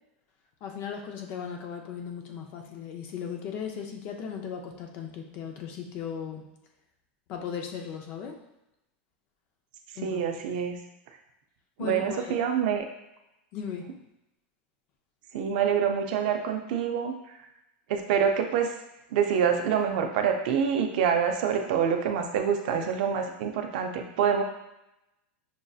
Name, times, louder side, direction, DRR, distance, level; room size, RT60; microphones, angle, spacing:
voice 1, 0.6-6.4 7.3-8.4 10.0-10.2 11.8-12.3 13.5-13.9, left 7 dB, 35° left, 3 dB, 0.4 m, -37 dB
voice 2, 10.0-10.8 11.8-12.8 15.3-17.2 17.9-18.7 19.1-24.4, right 7 dB, 55° right, 5 dB, 0.5 m, -26 dB
6.1 x 2.6 x 2.3 m, 0.91 s
supercardioid pair, 170°, 6 cm